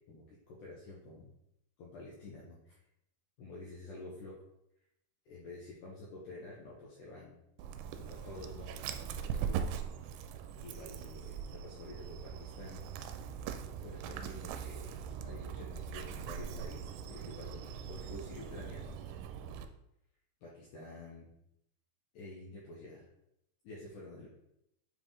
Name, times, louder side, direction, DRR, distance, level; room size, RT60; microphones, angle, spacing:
voice 1, 0.0-1.3 1.8-2.8 3.4-4.3 5.3-7.4 7.9-9.8 10.6-12.9 13.2-13.3 13.8-14.9 15.2-19.0 20.4-21.3 22.1-23.1 23.6-24.3, left 2 dB, 70° left, -5 dB, 2.0 m, -49 dB
Dog, 7.6-19.7, right 8 dB, 85° right, 2.6 m, -41 dB
7.5 x 3.5 x 3.7 m, 0.80 s
omnidirectional pair, 4.8 m